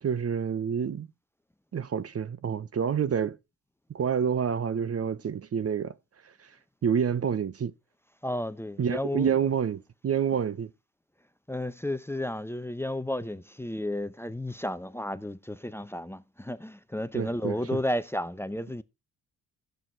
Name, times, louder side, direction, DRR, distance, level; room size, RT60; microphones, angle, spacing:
voice 1, 0.0-1.1 1.7-3.4 3.9-5.9 6.4-6.5 6.8-7.7 8.8-10.7 17.1-17.8, right 7 dB, 40° right, 0.8 m, -28 dB
voice 2, 8.2-9.3 11.5-18.8, left 1 dB, 5° left, 0.8 m, -32 dB
12.0 x 7.9 x 4.5 m
supercardioid pair, 60°, 37 cm